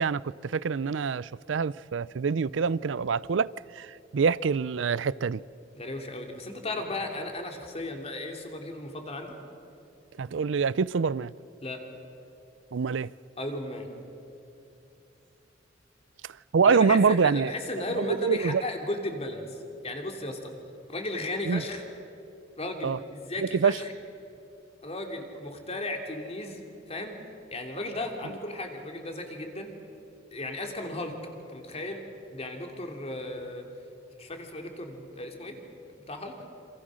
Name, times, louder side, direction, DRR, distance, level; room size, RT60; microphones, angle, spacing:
voice 1, 0.0-3.5 3.7-5.4 10.2-11.3 12.7-13.1 16.5-17.5 18.0-18.6 21.5-21.6 22.8-23.0 23.5-23.8, right 5 dB, 75° right, 0.5 m, -25 dB
voice 2, 5.7-9.3 11.6-11.8 13.4-13.9 16.6-20.5 20.9-21.8 22.6-23.9 24.8-26.6 26.9-27.2 27.5-29.7 30.3-31.1 31.5-32.0 32.3-33.7 34.2-36.4, left 1 dB, 35° left, 2.9 m, -35 dB
27.5 x 27.0 x 6.4 m
head